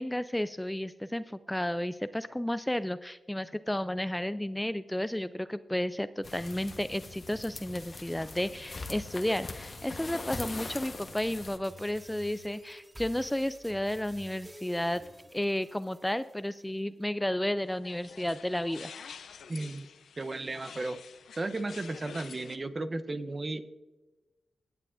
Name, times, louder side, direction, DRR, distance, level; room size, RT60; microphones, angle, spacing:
voice 1, 0.0-15.0 15.3-18.9, left 1 dB, 10° left, 14 dB, 0.3 m, -32 dB
sound 1, 6.2-11.6, left 3 dB, 45° left, 1.0 m, -42 dB
sound 2, 11.6-16.6, right 1 dB, 20° right, 3.0 m, -51 dB
sound 3, 17.6-22.6, left 7 dB, 80° left, 0.5 m, -49 dB
voice 2, 19.5-19.9 20.2-21.0 21.4-23.7, right 2 dB, 40° right, 11 dB, 0.7 m, -34 dB
17.5 x 7.6 x 2.5 m, 1.1 s
cardioid pair, 50°, 0 cm